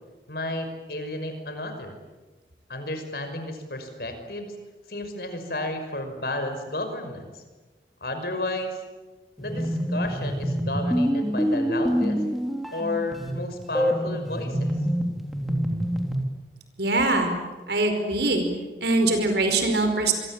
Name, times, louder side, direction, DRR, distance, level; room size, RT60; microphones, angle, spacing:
voice 1, 0.3-1.9 2.7-4.6 4.9-7.4 8.0-8.8 9.4-12.2 12.7-14.7, left 1 dB, 60° left, 7 dB, 5.7 m, -32 dB
sound 1, 9.4-16.2, equal, ahead, 3.6 m, -26 dB
voice 2, 16.8-17.3 17.7-18.4 18.8-20.1, right 2 dB, 70° right, 6 dB, 4.9 m, -22 dB
27.0 x 24.5 x 8.8 m, 1.2 s
head